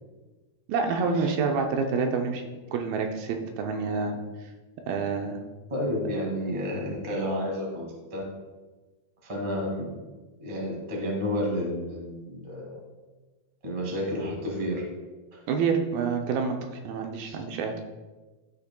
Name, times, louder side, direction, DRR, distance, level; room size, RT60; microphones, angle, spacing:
voice 1, 0.7-4.2 4.9-5.4 15.5-16.6 16.8-17.8, right 5 dB, 80° right, 4 dB, 2.5 m, -27 dB
voice 2, 5.7-8.2 9.2-10.0 10.4-12.8 13.6-14.8 15.3-15.4 17.2-17.4, equal, 60° right, -2 dB, 0.3 m, -31 dB
14.0 x 5.7 x 2.2 m, 1.2 s
omnidirectional pair, 4.5 m